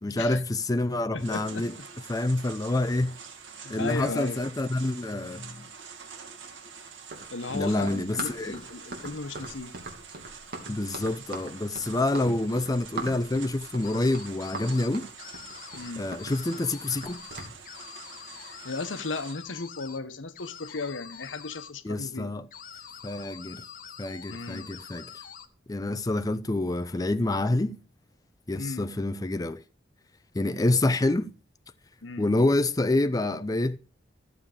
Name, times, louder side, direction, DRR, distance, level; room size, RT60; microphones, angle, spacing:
voice 1, 0.0-1.7 2.1-3.2 3.7-5.7 7.5-8.5 10.7-15.1 16.0-17.2 21.8-22.5 23.0-23.6 24.0-25.1 25.7-27.8 28.5-29.6 30.3-31.3 32.2-33.8, left 2 dB, 20° left, 0.5 m, -27 dB
voice 2, 1.1-1.9 3.6-4.4 7.3-9.7 15.7-16.1 18.3-22.3 24.3-24.7 28.5-28.9 32.0-32.3, left 3 dB, 85° left, 1.0 m, -36 dB
sound 1, 1.2-19.3, right 6 dB, 80° right, 2.1 m, -46 dB
Run, 7.0-17.5, right 2 dB, 55° right, 2.7 m, -40 dB
sound 2, 13.8-14.9 15.2-15.9 16.2-20.0 20.3-21.7 22.5-25.5, left 8 dB, 50° left, 1.2 m, -45 dB
14.0 x 7.4 x 5.0 m
head